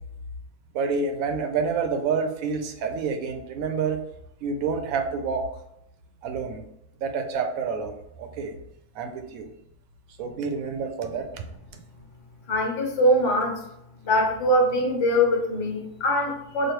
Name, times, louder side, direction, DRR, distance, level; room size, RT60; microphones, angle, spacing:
voice 1, 0.7-4.0 4.4-5.5 6.2-6.6 7.0-8.5 8.9-9.5 10.2-11.4, right 5 dB, 75° right, 5 dB, 1.0 m, -28 dB
voice 2, 12.5-13.6 14.0-16.7, equal, 60° left, 1 dB, 1.2 m, -22 dB
3.2 x 2.5 x 4.4 m, 0.80 s
omnidirectional pair, 1.5 m